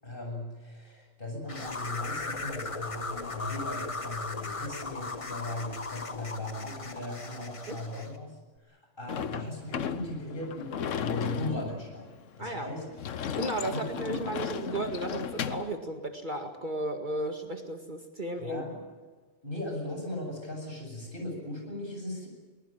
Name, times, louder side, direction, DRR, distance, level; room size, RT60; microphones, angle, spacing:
voice 1, 0.0-8.4 8.7-12.1 12.4-12.8 13.6-14.1 18.4-18.9 19.4-22.3, left 1 dB, 45° left, 1 dB, 8.2 m, -38 dB
sound 1, 1.5-8.2, left 3 dB, 25° left, 1.2 m, -37 dB
Sliding door / Slam, 9.1-15.7, left 8 dB, 80° left, 1.3 m, -35 dB
voice 2, 12.4-12.7 13.4-18.6, right 2 dB, 40° right, 5 dB, 2.1 m, -34 dB
23.0 x 20.5 x 9.1 m, 1.4 s
omnidirectional pair, 1.3 m